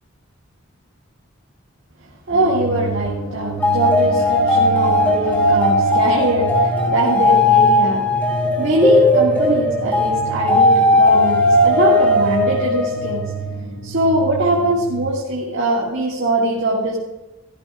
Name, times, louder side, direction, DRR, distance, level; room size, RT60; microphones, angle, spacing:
sound 1, 2.3-15.1, right 3 dB, 40° left, 1.2 m, -29 dB
voice 1, 2.3-8.1 8.6-13.2 13.8-17.0, right 1 dB, 55° right, -5 dB, 2.1 m, -21 dB
sound 2, 3.6-13.4, left 1 dB, 10° left, 2.4 m, -17 dB
17.0 x 15.0 x 2.5 m, 1.1 s
head